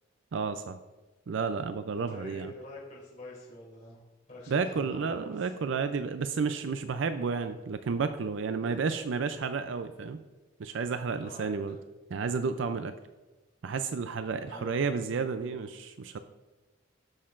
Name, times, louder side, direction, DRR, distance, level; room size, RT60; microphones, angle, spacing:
voice 1, 0.3-0.8 1.3-2.5 4.5-10.2 10.6-11.8 12.1-12.9 13.6-16.2, right 5 dB, 70° right, 10 dB, 0.4 m, -31 dB
voice 2, 1.9-4.0 4.3-5.5 8.6-8.9 11.2-11.6 14.5-15.0, left 1 dB, 40° left, -6 dB, 2.7 m, -46 dB
16.0 x 6.5 x 2.5 m, 1.1 s
head